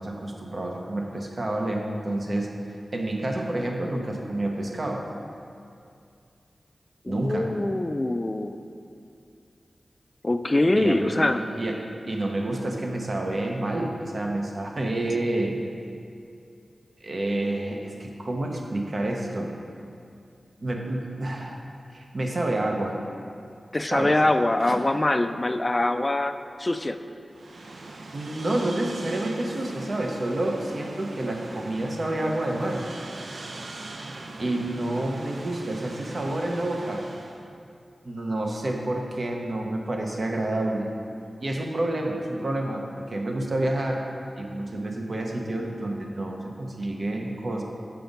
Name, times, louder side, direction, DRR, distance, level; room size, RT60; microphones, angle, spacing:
voice 1, 0.0-2.5 2.9-5.1 7.1-7.5 10.8-15.6 17.0-19.5 20.6-21.6 21.9-23.0 23.9-24.2 24.7-24.8 28.1-32.8 34.4-37.1 38.0-40.9 41.4-44.1 44.4-47.6, right 1 dB, 55° right, 1 dB, 1.0 m, -29 dB
voice 2, 7.0-8.6 10.2-11.4 23.7-27.0, left 2 dB, 30° left, 9 dB, 0.4 m, -23 dB
sound 1, 27.3-37.4, right 2 dB, 75° right, 0.6 m, -41 dB
7.1 x 5.8 x 5.3 m, 2.5 s
cardioid pair, 60°, 0 cm